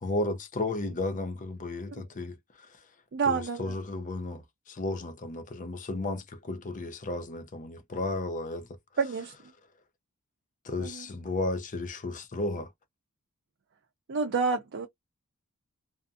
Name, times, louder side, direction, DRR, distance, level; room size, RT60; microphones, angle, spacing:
voice 1, 0.0-2.7 3.3-8.7 10.6-12.7, left 2 dB, 35° left, 0.6 m, -33 dB
voice 2, 3.1-3.6 9.0-9.3 10.8-11.0 14.1-14.9, right 5 dB, 55° right, 0.5 m, -28 dB
2.6 x 2.5 x 2.3 m
head